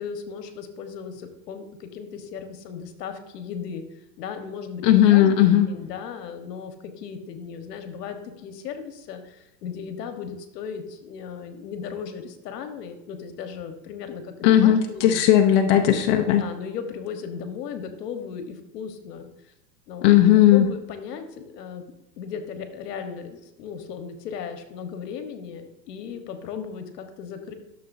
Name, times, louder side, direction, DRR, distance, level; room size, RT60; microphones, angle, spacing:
voice 1, 0.0-3.8 4.2-4.8 5.1-15.2 16.3-19.5 19.9-20.1 20.5-27.5, left 7 dB, 70° left, 7 dB, 1.4 m, -36 dB
voice 2, 4.8-5.7 14.4-16.4 20.0-20.7, left 11 dB, 40° left, 4 dB, 0.8 m, -16 dB
12.5 x 6.8 x 2.7 m, 0.92 s
supercardioid pair, 145°, 50 cm